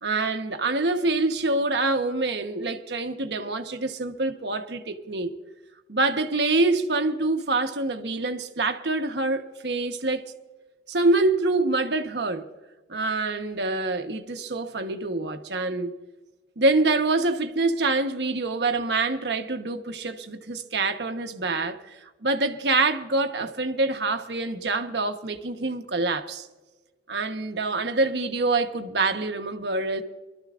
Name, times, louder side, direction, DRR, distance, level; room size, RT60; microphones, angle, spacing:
voice 1, 0.0-5.3 5.9-10.3 10.9-12.5 12.9-15.9 16.6-21.8 22.2-26.5 27.1-30.0, right 3 dB, 75° right, 1.1 m, -25 dB
25.0 x 13.0 x 2.5 m
head